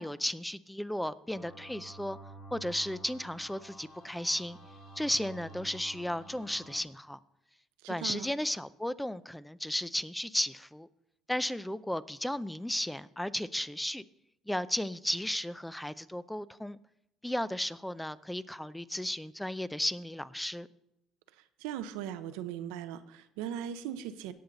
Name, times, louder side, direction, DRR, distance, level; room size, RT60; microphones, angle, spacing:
voice 1, 0.0-2.2 2.5-4.6 5.0-7.2 7.9-10.9 11.3-14.0 14.5-16.8 17.2-20.7, left 1 dB, 5° left, 16 dB, 0.5 m, -34 dB
sound 1, 1.3-6.8, right 2 dB, 65° left, 3.5 m, -50 dB
voice 2, 7.8-8.3 21.3-24.3, right 10 dB, 90° right, 11 dB, 0.7 m, -39 dB
18.0 x 6.8 x 4.0 m, 0.82 s
supercardioid pair, 85°, 0 cm